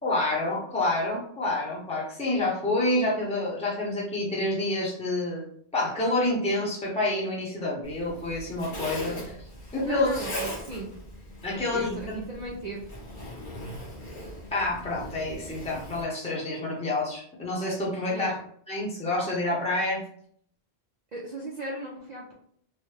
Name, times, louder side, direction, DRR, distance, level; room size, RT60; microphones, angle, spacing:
voice 1, 0.0-5.4 5.7-9.5 9.7-10.1 11.4-12.2 14.5-18.3 18.7-20.0, left 2 dB, 5° left, -5 dB, 0.7 m, -28 dB
Zipper (clothing), 7.8-16.0, equal, 50° left, 1.1 m, -40 dB
voice 2, 9.8-10.9 11.5-13.0 18.1-18.4 21.1-22.3, right 1 dB, 50° right, -3 dB, 0.5 m, -37 dB
3.1 x 2.2 x 3.2 m, 0.63 s
omnidirectional pair, 1.1 m